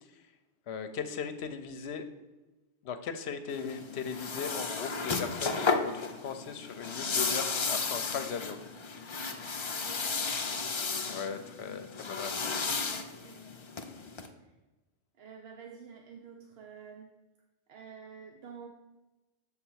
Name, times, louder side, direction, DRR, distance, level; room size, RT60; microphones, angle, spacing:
voice 1, 0.7-2.1 2.8-8.6 11.1-12.6, left 6 dB, 65° left, 9 dB, 0.8 m, -38 dB
sound 1, 3.5-14.3, left 4 dB, 50° left, 0.3 m, -34 dB
voice 2, 9.8-10.3 12.7-13.4 14.4-14.5 15.1-17.1 17.7-18.7, right 6 dB, 65° right, 2 dB, 0.8 m, -49 dB
6.7 x 3.6 x 6.2 m, 1.1 s
omnidirectional pair, 1.2 m